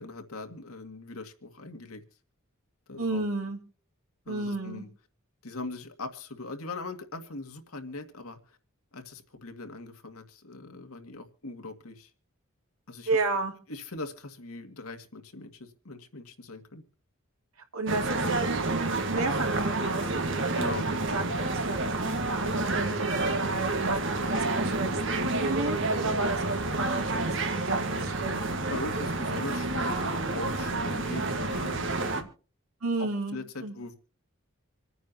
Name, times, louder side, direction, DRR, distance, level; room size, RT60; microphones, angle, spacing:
voice 1, 0.0-2.0 2.9-3.2 4.3-4.9 5.4-8.6 8.9-12.1 12.9-13.1 13.7-16.8 20.5-20.9 28.7-32.3 33.0-34.0, left 2 dB, 85° left, 6 dB, 2.1 m, -40 dB
voice 2, 3.0-3.6 4.3-4.8 13.1-13.5 17.7-27.2 27.5-28.5 32.8-33.7, right 3 dB, 90° right, 4 dB, 2.8 m, -32 dB
sound 1, 17.9-32.2, right 2 dB, 55° right, 1.8 m, -29 dB
27.0 x 9.3 x 2.9 m, 0.38 s
head